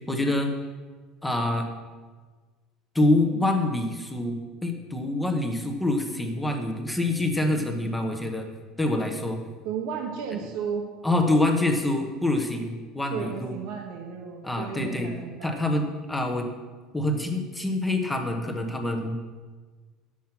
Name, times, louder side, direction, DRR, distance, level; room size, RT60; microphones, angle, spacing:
voice 1, 0.1-0.5 1.2-1.7 2.9-8.5 8.8-9.4 11.0-13.5 14.4-15.1 15.4-16.5 16.9-19.2, left 1 dB, 5° left, 4 dB, 1.0 m, -26 dB
voice 2, 9.6-10.9 13.1-15.5, right 7 dB, 65° right, 1 dB, 1.1 m, -33 dB
10.0 x 7.3 x 6.0 m, 1.4 s
cardioid pair, 170°, 0 cm